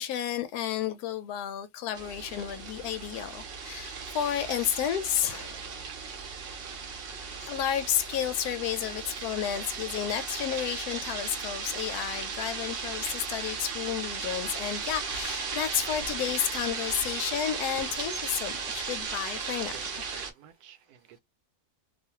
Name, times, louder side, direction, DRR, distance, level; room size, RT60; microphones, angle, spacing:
voice 1, 0.0-5.7 7.4-19.7, left 10 dB, 85° left, 1.1 m, -31 dB
sound 1, 1.9-20.3, right 5 dB, 55° right, 0.7 m, -36 dB
voice 2, 19.7-21.2, right 10 dB, 85° right, 1.1 m, -51 dB
2.5 x 2.4 x 2.7 m
omnidirectional pair, 1.6 m